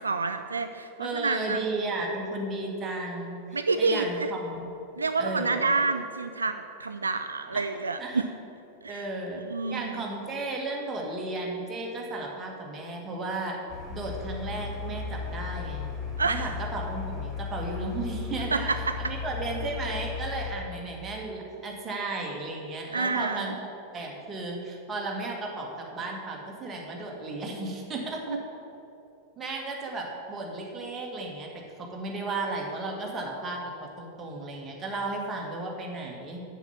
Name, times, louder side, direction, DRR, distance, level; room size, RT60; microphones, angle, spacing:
voice 1, 0.0-1.6 3.5-4.3 5.0-8.3 8.8-9.1 9.5-10.0 16.2-16.5 18.5-19.1 22.9-23.5 28.3-28.4, right 4 dB, 75° right, 8 dB, 0.3 m, -28 dB
voice 2, 1.0-4.7 5.2-5.7 7.5-7.6 8.0-8.2 8.9-9.4 9.7-13.6 13.9-15.9 16.2-18.7 19.1-23.6 23.9-28.4 29.4-31.5 31.8-36.4, right 2 dB, 20° right, -1 dB, 1.8 m, -34 dB
sound 1, 13.7-20.6, left 6 dB, 20° left, 1.6 m, -35 dB
7.1 x 7.0 x 7.1 m, 2.9 s
figure-of-eight pair, 90°, 0 cm